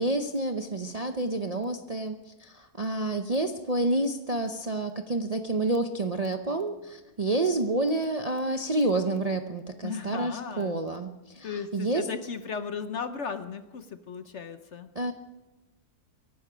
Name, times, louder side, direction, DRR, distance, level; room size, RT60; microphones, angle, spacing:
voice 1, 0.0-12.1 14.9-15.1, right 2 dB, 35° right, 5 dB, 0.6 m, -29 dB
voice 2, 9.8-10.8 11.4-14.9, left 6 dB, 55° left, 10 dB, 1.0 m, -36 dB
24.0 x 11.5 x 5.1 m, 1.1 s
omnidirectional pair, 1.7 m